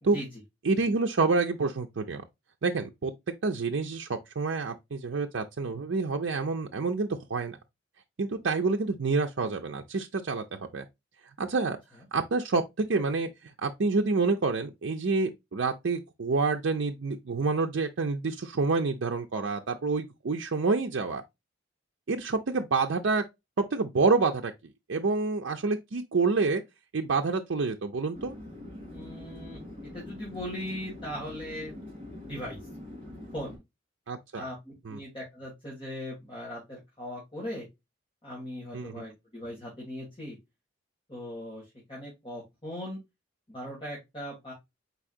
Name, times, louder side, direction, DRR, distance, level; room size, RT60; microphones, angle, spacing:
voice 1, 0.6-2.2 2.6-3.1 3.4-7.6 8.2-10.8 11.4-11.8 12.1-13.3 13.6-21.2 22.1-23.2 23.6-24.5 24.9-26.6 26.9-28.4 34.1-34.4 34.9-35.0 38.7-38.9, right 4 dB, 70° right, 0.5 m, -28 dB
Chatter / Fixed-wing aircraft airplane, 28.1-33.6, left 1 dB, 30° right, 3.1 m, -44 dB
voice 2, 28.9-31.8 32.2-32.6 33.3-33.6 34.4-37.7 38.2-40.4 41.1-43.0 43.5-44.5, left 1 dB, 25° left, 2.1 m, -39 dB
4.7 x 4.1 x 2.5 m
head